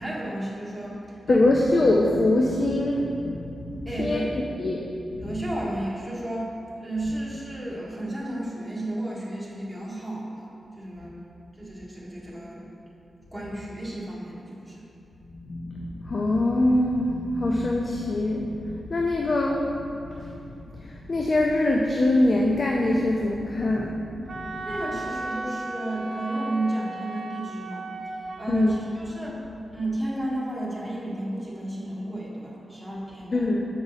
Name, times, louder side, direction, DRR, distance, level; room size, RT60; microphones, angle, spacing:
voice 1, 0.0-1.5 3.8-4.3 5.2-10.5 10.8-11.2 11.6-12.7 13.3-14.8 24.6-29.4 29.7-33.5, right 1 dB, 5° right, -7 dB, 1.5 m, -32 dB
voice 2, 1.3-4.8 5.1-5.6 7.1-7.2 11.0-11.1 15.3-19.7 20.1-20.4 20.8-24.8 28.5-28.8 33.3-33.7, left 1 dB, 45° left, 0 dB, 0.5 m, -24 dB
Wind instrument woodwind instrument, 24.3-28.5, right 2 dB, 60° right, 0.5 m, -35 dB
6.7 x 4.8 x 4.0 m, 2.7 s
wide cardioid pair, 100°, 0 cm